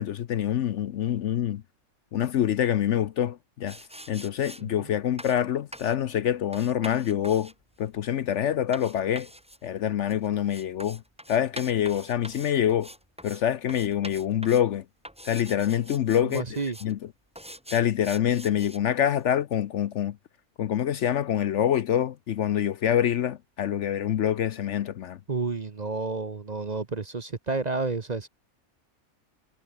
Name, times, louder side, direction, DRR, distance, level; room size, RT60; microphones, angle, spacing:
voice 1, 0.0-1.6 2.1-3.8 4.1-7.5 7.8-9.3 9.6-11.0 11.3-12.9 13.2-14.8 15.2-16.4 16.8-17.0 17.7-20.2 20.6-25.2, left 10 dB, 65° left, 0.9 m, -26 dB
sound 1, 3.7-4.6 5.2-5.4 5.7-6.0 6.5-13.4 13.7-14.7 15.0-16.9 17.4-18.8, equal, 5° right, 2.7 m, -44 dB
voice 2, 16.2-16.8 25.3-28.3, right 3 dB, 35° right, 1.0 m, -30 dB
omnidirectional pair, 1.5 m